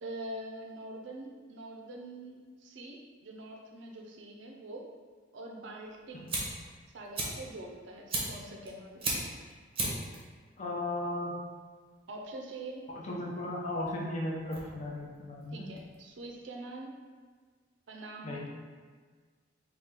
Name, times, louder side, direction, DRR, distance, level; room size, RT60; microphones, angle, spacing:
voice 1, 0.0-4.9 5.3-6.4 6.9-9.1 12.1-12.8 15.5-16.9 17.9-18.5, right 1 dB, 65° right, 2 dB, 0.5 m, -44 dB
Fire, 5.8-16.3, right 2 dB, 30° right, 0.7 m, -39 dB
voice 2, 10.6-11.4 12.9-15.7 18.2-18.5, left 1 dB, 35° left, -3 dB, 0.7 m, -36 dB
3.9 x 2.3 x 3.6 m, 1.5 s
head